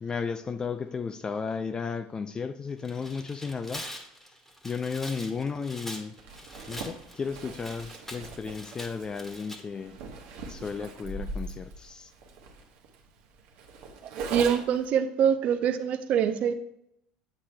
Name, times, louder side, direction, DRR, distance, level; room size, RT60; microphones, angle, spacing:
voice 1, 0.0-3.8 4.6-6.2 6.7-10.0 10.5-12.1, left 5 dB, 25° left, 0.3 m, -34 dB
Tearing, 2.7-9.6, equal, 10° left, 1.3 m, -43 dB
Zipper (clothing), 6.2-14.9, right 3 dB, 65° right, 1.0 m, -41 dB
voice 2, 14.3-16.5, right 8 dB, 50° right, 0.5 m, -24 dB
8.4 x 6.0 x 2.2 m
hypercardioid pair, 80°, 3 cm